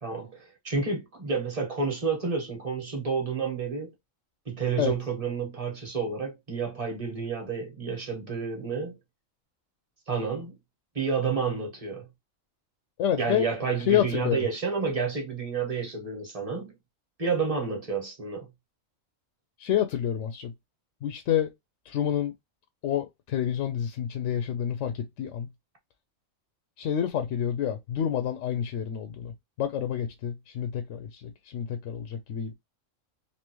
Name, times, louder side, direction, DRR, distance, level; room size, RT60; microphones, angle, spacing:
voice 1, 0.0-3.9 4.4-9.0 10.1-10.6 10.9-12.0 13.2-16.7 17.2-18.5, right 5 dB, 30° right, 1.3 m, -30 dB
voice 2, 13.0-13.5 13.8-14.5 19.6-20.5 21.0-21.5 21.9-22.3 22.8-25.5 26.8-32.5, left 9 dB, 70° left, 0.9 m, -28 dB
3.4 x 2.7 x 2.9 m
omnidirectional pair, 1.4 m